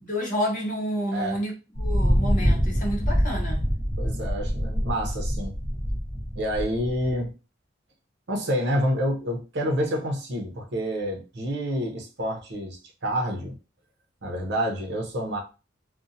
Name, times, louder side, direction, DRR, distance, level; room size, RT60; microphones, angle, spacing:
voice 1, 0.0-3.7, equal, 45° left, 0.9 m, -29 dB
Thunder, 1.8-7.2, equal, 15° right, 0.7 m, -25 dB
voice 2, 4.0-5.5 6.3-7.3 8.3-13.6 14.2-15.4, equal, 60° right, 0.7 m, -28 dB
2.6 x 2.1 x 2.6 m
head